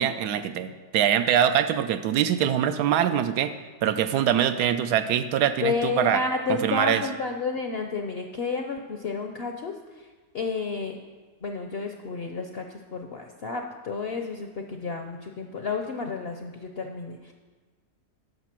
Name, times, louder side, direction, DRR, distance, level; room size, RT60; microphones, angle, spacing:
voice 1, 0.0-3.5 3.8-6.2 6.5-7.0, right 9 dB, 90° right, 10 dB, 1.2 m, -23 dB
voice 2, 5.6-10.1 10.3-11.0 11.4-17.3, left 4 dB, 65° left, 4 dB, 0.6 m, -31 dB
9.2 x 6.3 x 6.0 m, 1.4 s
omnidirectional pair, 1.7 m